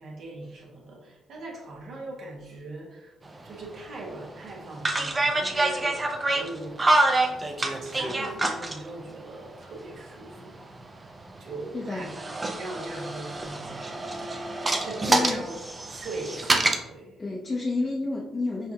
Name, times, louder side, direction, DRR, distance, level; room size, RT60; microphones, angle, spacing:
voice 1, 0.0-3.2 3.4-6.0 6.3-6.8 7.1-11.1 11.4-12.3 12.6-14.5 14.7-17.2, right 2 dB, 60° right, -2 dB, 1.3 m, -40 dB
sound 1, 3.3-3.4 3.8-4.0 4.8-8.8 9.9-11.6 12.0-16.8, right 2 dB, 25° right, 0.5 m, -26 dB
voice 2, 11.7-12.1 15.1-15.5 17.2-18.7, left 2 dB, 25° left, -4 dB, 0.6 m, -29 dB
5.6 x 2.5 x 2.8 m, 0.98 s
cardioid pair, 90°, 0 cm